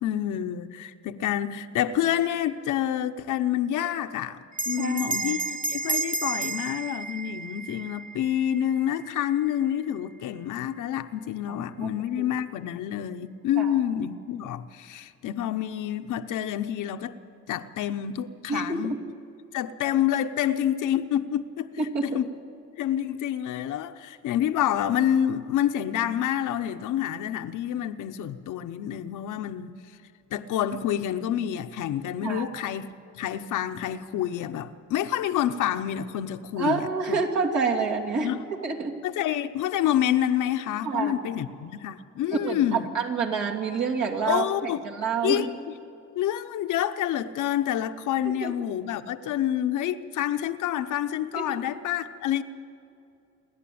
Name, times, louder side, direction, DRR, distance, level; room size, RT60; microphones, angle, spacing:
voice 1, 0.0-17.2 17.5-18.9 19.5-21.7 22.0-22.2 22.8-29.7 30.3-37.2 38.2-38.4 39.0-42.9 44.3-44.8 45.2-45.5 46.1-52.4, left 11 dB, 85° left, 0.9 m, -28 dB
Bell, 4.5-9.4, right 3 dB, 25° right, 1.1 m, -32 dB
voice 2, 4.8-5.1 11.5-11.9 12.2-12.3 13.6-13.7 18.5-19.0 21.8-22.2 32.2-32.5 36.6-38.3 38.6-39.0 40.8-41.2 42.4-45.5 48.4-48.5 51.3-51.6, right 5 dB, 70° right, 3.0 m, -28 dB
29.0 x 11.0 x 8.6 m
cardioid pair, 90°, 30 cm